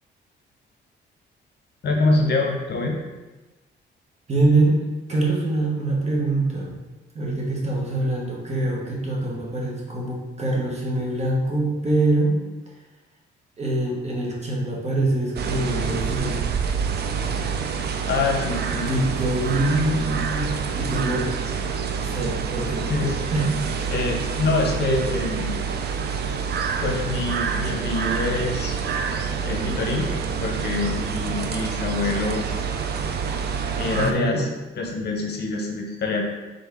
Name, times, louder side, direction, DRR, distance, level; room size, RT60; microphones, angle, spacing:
voice 1, 1.8-3.0 18.0-18.9 22.9-23.1 23.9-25.5 26.8-28.7 29.4-30.1 30.4-32.5 33.8-34.5 34.8-36.3, left 3 dB, 55° left, 1 dB, 0.8 m, -25 dB
voice 2, 4.3-4.8 5.1-6.8 7.1-12.4 13.6-16.4 17.1-17.3 18.8-21.3 22.0-22.9 23.3-23.5 33.9-34.5, right 2 dB, 35° right, -3 dB, 1.3 m, -24 dB
sound 1, 15.4-34.1, right 6 dB, 55° right, 0.4 m, -27 dB
4.0 x 3.5 x 3.5 m, 1.2 s
cardioid pair, 90°, 20 cm